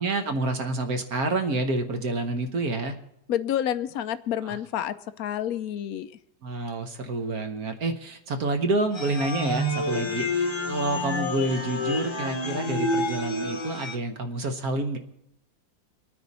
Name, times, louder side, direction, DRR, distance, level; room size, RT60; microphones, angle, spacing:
voice 1, 0.0-3.0 4.4-4.6 6.4-15.0, right 2 dB, 55° right, 6 dB, 1.4 m, -28 dB
voice 2, 3.3-6.1, left 10 dB, 70° left, 12 dB, 0.9 m, -29 dB
sound 1, 8.9-14.0, left 2 dB, 20° left, 1.0 m, -29 dB
24.5 x 9.4 x 4.2 m, 0.80 s
omnidirectional pair, 2.1 m